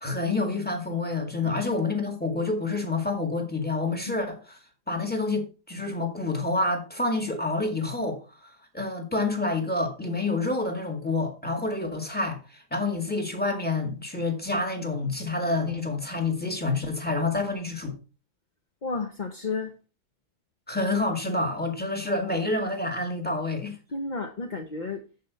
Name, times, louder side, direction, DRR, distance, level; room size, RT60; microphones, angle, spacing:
voice 1, 0.0-4.6 4.9-8.2 8.7-18.0 20.7-23.8, left 2 dB, 5° left, 1.8 m, -28 dB
voice 2, 18.8-19.7 23.9-25.0, left 3 dB, 40° left, 0.7 m, -32 dB
8.7 x 7.7 x 4.0 m
omnidirectional pair, 1.7 m